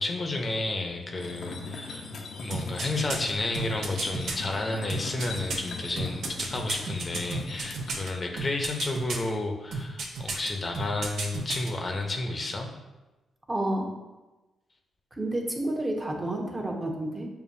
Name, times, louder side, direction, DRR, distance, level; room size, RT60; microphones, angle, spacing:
voice 1, 0.0-2.1 2.4-12.7, left 2 dB, 40° left, 3 dB, 0.7 m, -31 dB
sound 1, 1.2-8.0, left 4 dB, 75° left, 0.6 m, -40 dB
sound 2, 2.5-4.4 4.9-8.1 8.4-9.3 9.7-10.5 10.7-11.7 12.0-12.1, right 3 dB, 75° right, 0.6 m, -32 dB
voice 2, 13.5-13.9 15.1-17.3, right 1 dB, 25° right, 1 dB, 0.9 m, -30 dB
6.8 x 2.3 x 2.6 m, 1.1 s
supercardioid pair, 60°, 0 cm